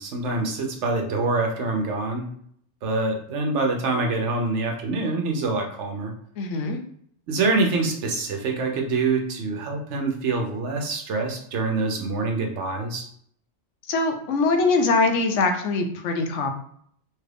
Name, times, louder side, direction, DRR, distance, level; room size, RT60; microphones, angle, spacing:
voice 1, 0.0-2.3 2.8-6.1 7.3-13.1, right 3 dB, 75° right, 2 dB, 1.0 m, -25 dB
voice 2, 6.4-6.8 13.9-16.5, left 3 dB, 85° left, 4 dB, 0.9 m, -22 dB
3.1 x 2.3 x 3.3 m, 0.63 s
omnidirectional pair, 1.2 m